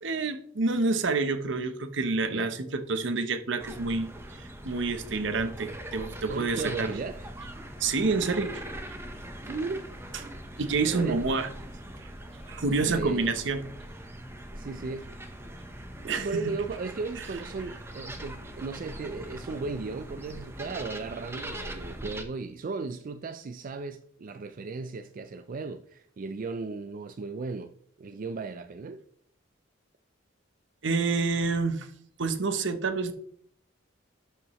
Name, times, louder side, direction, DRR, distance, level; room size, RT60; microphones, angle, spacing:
voice 1, 0.0-6.9 7.8-8.6 10.6-11.5 12.5-13.6 16.1-16.4 30.8-31.9 32.2-33.1, right 3 dB, 70° right, 0.9 m, -28 dB
sound 1, 3.6-22.2, right 1 dB, 15° right, 0.9 m, -42 dB
sound 2, 4.9-13.5, left 1 dB, 65° left, 2.7 m, -53 dB
voice 2, 6.3-7.3 9.5-9.9 10.9-11.2 12.8-13.3 14.5-15.1 16.0-27.7 28.0-29.0, right 4 dB, 45° right, 0.4 m, -36 dB
12.0 x 5.7 x 3.1 m
head